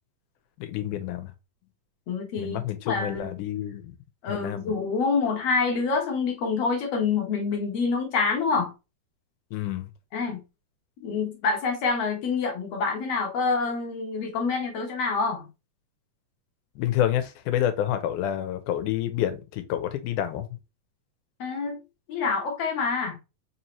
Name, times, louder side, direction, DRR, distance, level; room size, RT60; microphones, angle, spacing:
voice 1, 0.6-1.3 2.4-4.0 4.3-4.7 9.5-9.9 16.8-20.5, left 11 dB, 85° left, 2.2 m, -28 dB
voice 2, 2.1-2.6 2.9-3.3 4.2-8.7 10.1-10.4 11.0-15.5 21.4-21.8 22.1-23.2, left 4 dB, 65° left, 1.8 m, -26 dB
5.0 x 2.8 x 2.9 m
omnidirectional pair, 3.5 m